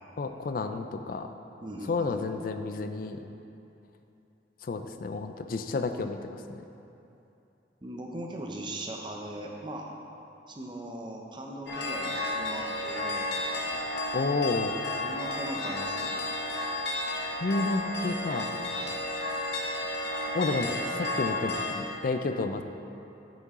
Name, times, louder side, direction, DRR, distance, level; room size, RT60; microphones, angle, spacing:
voice 1, 0.2-1.3 1.9-3.2 4.6-6.2 6.5-6.6 14.1-14.7 17.4-18.6 20.3-22.6, left 3 dB, 50° left, 8 dB, 0.4 m, -30 dB
voice 2, 1.6-2.2 7.8-9.9 10.5-13.8 15.0-16.2 18.7-19.0, right 1 dB, 25° right, 0 dB, 0.7 m, -39 dB
sound 1, 11.7-21.7, left 1 dB, 65° left, 0.9 m, -32 dB
8.3 x 6.9 x 3.7 m, 2.8 s
head